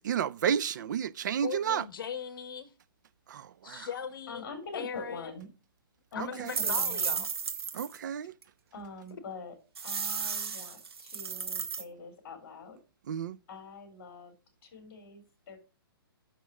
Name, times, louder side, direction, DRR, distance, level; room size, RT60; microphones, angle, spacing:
voice 1, 0.0-1.8 3.3-3.9 6.4-6.5 7.7-8.3 13.1-13.4, right 8 dB, 50° right, 0.5 m, -31 dB
voice 2, 1.4-2.7 3.6-4.4 4.7-5.3 6.1-6.3 6.6-7.3, left 7 dB, 60° left, 1.2 m, -39 dB
voice 3, 4.3-5.5 6.1-7.2 8.7-9.6 9.8-12.8 13.5-14.3 14.6-15.6, left 3 dB, 40° left, 3.5 m, -44 dB
sound 1, 6.5-8.0 8.4-8.5 9.8-11.8, right 6 dB, 85° right, 1.6 m, -33 dB
8.3 x 6.2 x 6.4 m
hypercardioid pair, 165°, 13 cm